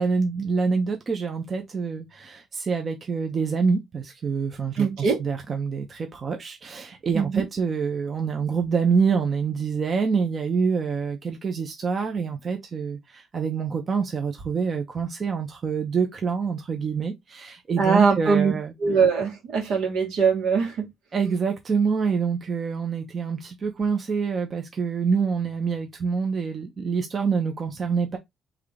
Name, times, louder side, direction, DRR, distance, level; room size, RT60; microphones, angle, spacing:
voice 1, 0.0-18.7 21.1-28.2, right 5 dB, 45° right, 0.9 m, -26 dB
voice 2, 4.8-5.2 7.1-7.4 17.8-18.5 18.8-20.9, right 5 dB, 85° right, 2.1 m, -22 dB
3.6 x 3.4 x 3.7 m
cardioid pair, 90°, 0 cm